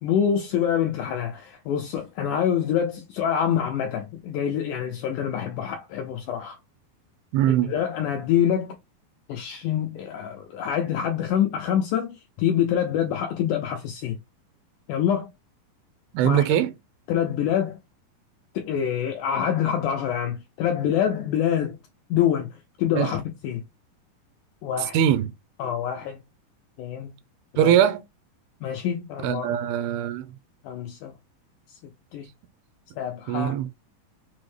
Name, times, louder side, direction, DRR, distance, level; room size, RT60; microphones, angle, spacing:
voice 1, 0.0-6.6 7.5-8.7 9.3-14.2 14.9-15.3 16.2-16.5 17.1-17.8 18.5-21.8 22.1-22.5 22.8-23.6 24.6-25.0 25.6-26.2 26.8-27.1 27.5-27.8 28.6-29.5 30.6-31.1 31.7-31.8 32.1-32.3 33.0-33.6, left 9 dB, 85° left, 1.7 m, -26 dB
voice 2, 7.3-7.7 16.1-16.7 22.9-23.1 24.9-25.3 27.6-28.0 29.2-30.3 33.3-33.8, right 10 dB, 90° right, 2.4 m, -21 dB
6.2 x 2.1 x 3.1 m
omnidirectional pair, 4.2 m